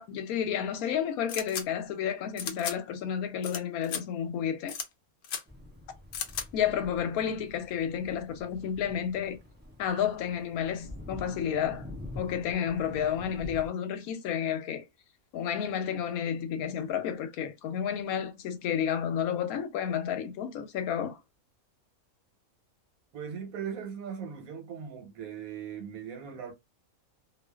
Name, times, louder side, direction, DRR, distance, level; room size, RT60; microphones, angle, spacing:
voice 1, 0.0-4.7 6.5-9.4 9.8-11.9 12.2-14.8 15.3-21.2, left 8 dB, 90° left, 1.1 m, -31 dB
sound 1, 1.3-1.6 2.4-2.7 3.4-3.6 3.8-4.0 4.7-4.9 5.2-5.4 6.1-6.4, left 7 dB, 65° left, 0.6 m, -35 dB
sound 2, 5.5-13.7, left 2 dB, 15° right, 0.3 m, -46 dB
voice 2, 23.1-26.5, right 7 dB, 80° right, 1.3 m, -39 dB
2.4 x 2.4 x 2.2 m
omnidirectional pair, 1.5 m